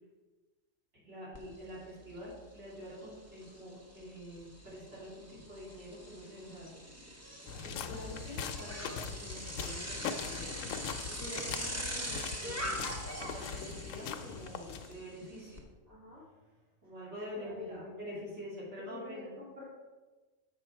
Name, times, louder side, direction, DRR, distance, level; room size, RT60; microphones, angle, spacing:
voice 1, 1.0-6.7 7.6-10.7 11.1-15.6 16.8-19.4, equal, 55° right, -7 dB, 3.3 m, -46 dB
Bicycle, 1.3-1.4 1.8-15.6, equal, 15° right, 0.8 m, -43 dB
sound 1, 7.5-15.1, left 7 dB, 75° left, 0.9 m, -41 dB
voice 2, 15.9-16.6 17.4-17.8 18.8-19.7, left 1 dB, 80° right, -8 dB, 2.3 m, -49 dB
6.9 x 6.3 x 4.4 m, 1.2 s
omnidirectional pair, 1.4 m